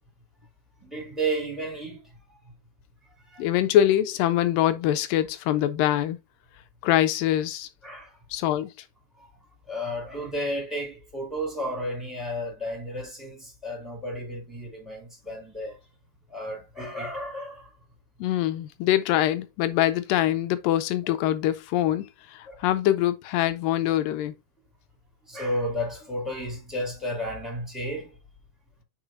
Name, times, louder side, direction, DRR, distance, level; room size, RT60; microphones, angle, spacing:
voice 1, 0.8-2.0 3.3-3.4 7.8-8.2 9.2-9.3 9.7-15.8 16.3-17.7 21.0-21.2 22.4-22.7 25.2-28.1, equal, ahead, 3.1 m, -32 dB
voice 2, 3.4-6.2 6.8-7.7 8.3-8.7 18.2-24.3, left 12 dB, 80° left, 2.3 m, -24 dB
8.9 x 4.6 x 2.6 m
omnidirectional pair, 4.0 m